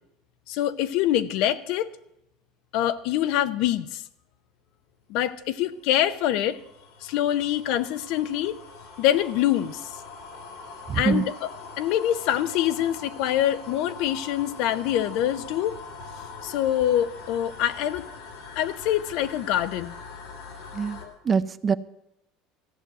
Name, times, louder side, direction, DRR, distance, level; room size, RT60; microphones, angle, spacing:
voice 1, 0.5-1.9 2.7-4.0 5.1-6.6 7.0-8.6 9.0-9.9 10.9-11.2 11.8-15.8 16.4-18.1 18.5-19.9 21.0-21.1, left 12 dB, 65° left, 14 dB, 0.7 m, -25 dB
sound 1, 5.5-21.1, left 4 dB, 80° left, 2.8 m, -43 dB
voice 2, 10.9-11.3 20.7-21.0 21.2-21.8, right 6 dB, 25° right, 15 dB, 0.4 m, -24 dB
14.5 x 6.3 x 9.1 m, 0.82 s
cardioid pair, 145°, 0 cm